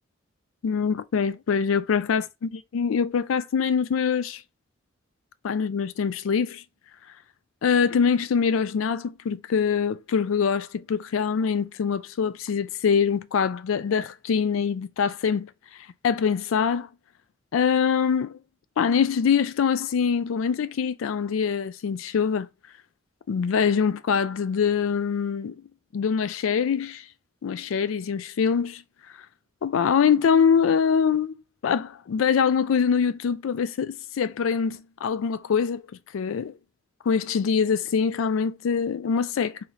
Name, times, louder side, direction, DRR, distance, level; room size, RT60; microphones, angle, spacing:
voice 1, 0.6-4.4 5.4-6.6 7.6-16.9 17.5-18.4 18.8-22.5 23.3-25.6 25.9-27.1 27.4-28.8 29.6-35.8 36.1-36.5 37.1-39.6, left 6 dB, 85° left, 0.4 m, -24 dB
3.2 x 2.7 x 3.8 m
head